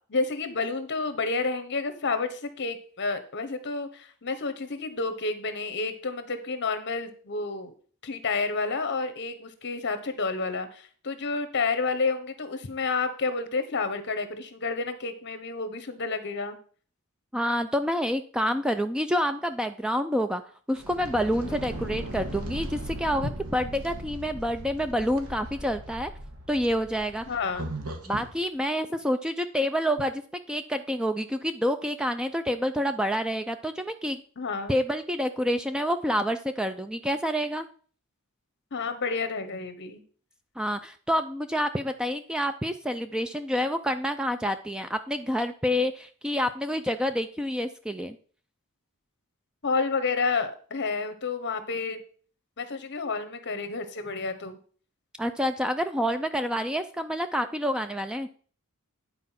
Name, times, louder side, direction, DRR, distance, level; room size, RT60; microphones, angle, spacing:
voice 1, 0.1-7.7 8.0-16.6 21.5-21.6 27.3-27.7 34.4-34.8 38.7-40.0 49.6-52.0 52.6-54.6, left 4 dB, 55° left, 11 dB, 1.1 m, -30 dB
voice 2, 17.3-20.4 20.7-26.1 26.5-27.2 28.1-30.2 30.5-34.2 34.7-37.7 40.6-48.2 55.2-58.3, equal, 5° right, 9 dB, 0.4 m, -28 dB
sound 1, 20.7-28.3, right 1 dB, 80° right, 1.6 m, -38 dB
9.8 x 4.5 x 5.8 m, 0.44 s
head